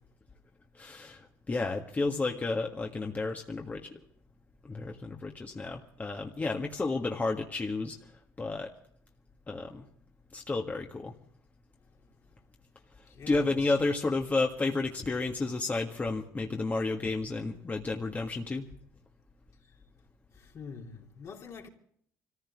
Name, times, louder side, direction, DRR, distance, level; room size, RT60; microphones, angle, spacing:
voice 1, 0.8-3.9 4.6-8.0 8.4-8.7 9.5-9.8 10.3-11.1 13.3-18.6, left 3 dB, 25° left, 1.6 m, -31 dB
voice 2, 13.1-13.6 20.5-21.7, left 5 dB, 55° left, 3.1 m, -45 dB
25.0 x 15.0 x 3.6 m
supercardioid pair, 75°, 6 cm